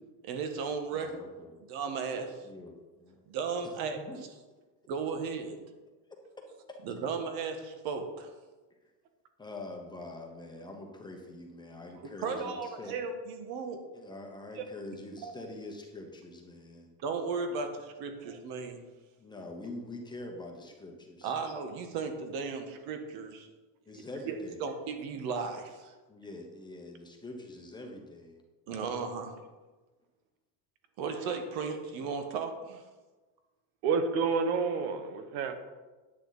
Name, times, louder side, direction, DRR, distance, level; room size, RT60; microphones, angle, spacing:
voice 1, 0.2-1.2 1.7-2.4 3.3-4.0 4.9-5.6 6.8-8.3 12.2-13.8 14.6-14.7 15.2-15.3 17.0-18.8 21.2-23.5 24.3-24.4 24.6-25.9 28.7-29.4 31.0-32.8, right 5 dB, 55° right, 6 dB, 1.6 m, -35 dB
voice 2, 0.9-1.6 2.4-3.2 4.0-4.2 6.7-6.8 9.4-12.9 13.9-16.9 19.2-21.3 23.9-24.7 26.1-28.4, left 2 dB, 10° left, 1 dB, 1.0 m, -45 dB
voice 3, 33.8-35.6, right 5 dB, 90° right, 8 dB, 1.4 m, -29 dB
10.0 x 8.7 x 4.1 m, 1.2 s
cardioid pair, 160°, 43 cm